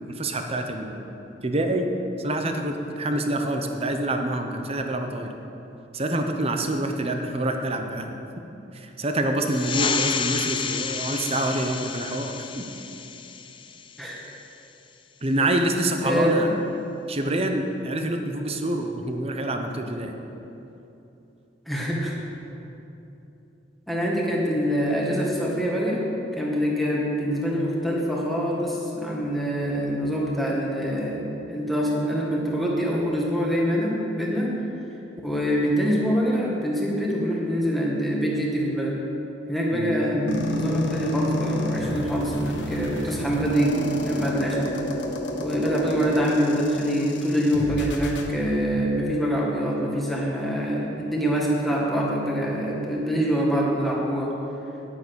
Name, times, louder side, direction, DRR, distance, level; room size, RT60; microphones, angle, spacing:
voice 1, 0.1-1.0 1.4-1.9 2.2-5.3 5.9-8.1 8.7-12.7 15.2-16.5 17.1-20.1 39.7-40.1, right 1 dB, 35° right, 5 dB, 0.9 m, -26 dB
sound 1, 9.4-14.5, left 6 dB, 25° left, 0.4 m, -30 dB
voice 2, 16.0-16.5 21.7-22.2 23.9-26.0 26.3-34.5 35.2-39.0 39.5-44.8 45.4-54.3, equal, ahead, -4 dB, 1.8 m, -25 dB
sound 2, 40.3-48.3, left 2 dB, 75° left, 1.2 m, -31 dB
9.8 x 8.8 x 6.3 m, 3.0 s
head